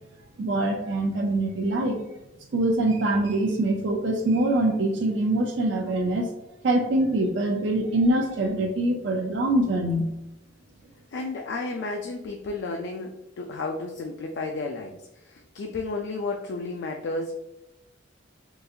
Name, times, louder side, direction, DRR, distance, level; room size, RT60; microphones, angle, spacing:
voice 1, 0.4-2.0 2.5-6.3 6.6-10.1, right 1 dB, 70° right, 2 dB, 0.4 m, -24 dB
voice 2, 11.1-17.4, left 3 dB, 60° left, 2 dB, 0.3 m, -32 dB
3.8 x 2.4 x 2.6 m, 0.91 s
head